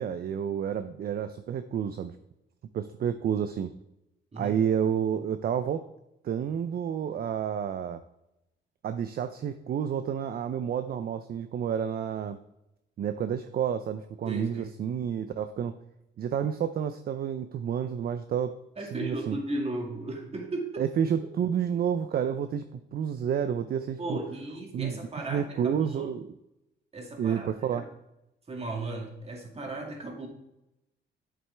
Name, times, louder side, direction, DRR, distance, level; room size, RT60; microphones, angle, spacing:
voice 1, 0.0-2.1 2.7-3.7 4.4-5.9 6.2-8.0 8.8-12.4 13.0-15.7 16.2-18.6 18.9-19.4 20.8-24.2 24.7-25.0 25.3-26.3 27.2-27.9, right 8 dB, 50° right, 10 dB, 0.5 m, -30 dB
voice 2, 14.2-14.7 18.8-20.9 24.0-26.2 26.9-27.8 28.5-30.3, right 2 dB, 30° right, 1 dB, 2.2 m, -36 dB
7.9 x 7.6 x 3.4 m, 0.87 s
cardioid pair, 90°, 20 cm